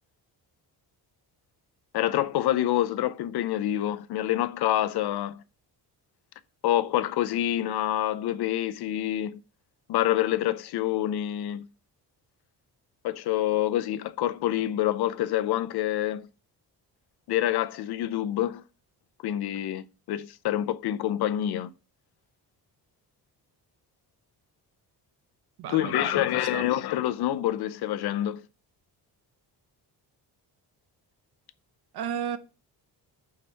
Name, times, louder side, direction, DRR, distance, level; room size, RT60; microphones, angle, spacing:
voice 1, 1.9-5.4 6.6-9.4 9.9-11.7 13.0-16.3 17.3-18.6 19.2-21.7 25.7-28.4, left 13 dB, 70° left, 0.6 m, -27 dB
voice 2, 25.6-26.7 31.9-32.4, right 8 dB, 70° right, 0.8 m, -34 dB
4.8 x 4.4 x 5.6 m
cardioid pair, 140°, 40 cm